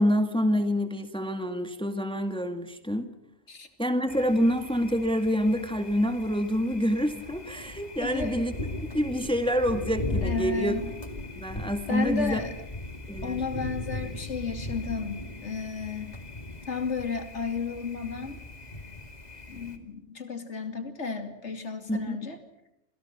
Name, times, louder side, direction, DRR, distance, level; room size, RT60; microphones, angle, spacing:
voice 1, 0.0-3.1 3.8-8.5 8.9-10.7 11.4-12.4 13.1-13.4 21.9-22.2, equal, 5° left, 7 dB, 2.0 m, -27 dB
Thunder, 4.1-19.8, left 2 dB, 35° left, 2.7 m, -38 dB
voice 2, 8.0-8.5 10.2-10.8 11.9-12.5 13.2-16.1 16.7-18.4 19.5-22.4, left 5 dB, 65° left, 6 dB, 3.1 m, -33 dB
29.5 x 28.5 x 6.0 m, 0.81 s
omnidirectional pair, 1.3 m